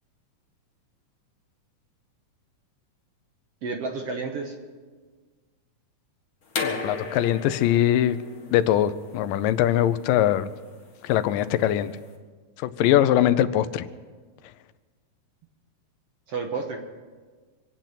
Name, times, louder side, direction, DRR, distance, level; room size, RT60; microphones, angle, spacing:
voice 1, 3.6-4.6 16.3-16.8, right 4 dB, 60° right, 3 dB, 1.7 m, -30 dB
sound 1, 6.5-12.1, left 4 dB, 40° left, 1.5 m, -36 dB
voice 2, 6.6-8.2 8.5-10.5 11.0-11.9 12.6-13.8, left 12 dB, 90° left, 13 dB, 2.3 m, -22 dB
25.5 x 9.2 x 5.9 m, 1.4 s
omnidirectional pair, 3.8 m